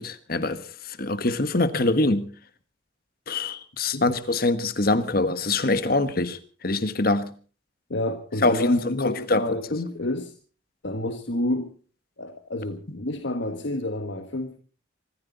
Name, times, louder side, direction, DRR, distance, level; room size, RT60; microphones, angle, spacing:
voice 1, 0.0-2.3 3.3-7.3 8.4-9.4, left 2 dB, 50° left, 1.4 m, -24 dB
voice 2, 7.9-10.3 10.8-11.8 12.2-14.6, left 1 dB, 65° left, 1.4 m, -29 dB
24.5 x 14.5 x 4.0 m
head